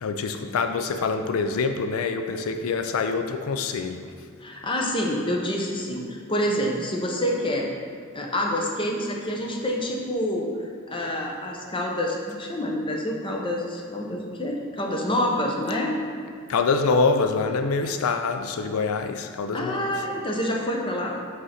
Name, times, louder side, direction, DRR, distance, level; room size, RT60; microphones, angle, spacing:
voice 1, 0.0-4.1 16.5-19.9, left 4 dB, 90° left, 7 dB, 0.4 m, -25 dB
voice 2, 4.4-7.7 8.1-10.5 10.9-16.0 19.5-21.2, equal, 25° left, 0 dB, 0.8 m, -27 dB
5.4 x 4.1 x 5.8 m, 2.3 s
head